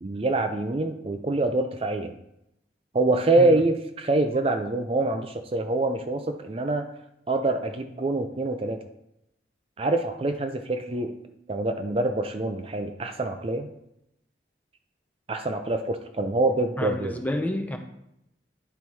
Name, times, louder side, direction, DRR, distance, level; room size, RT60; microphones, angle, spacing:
voice 1, 0.0-2.1 2.9-6.9 7.3-8.8 9.8-11.1 11.5-13.7 15.3-17.2, right 2 dB, 30° right, 6 dB, 0.5 m, -25 dB
voice 2, 16.8-17.8, left 1 dB, 10° left, 5 dB, 0.7 m, -29 dB
10.5 x 4.1 x 4.6 m, 0.82 s
head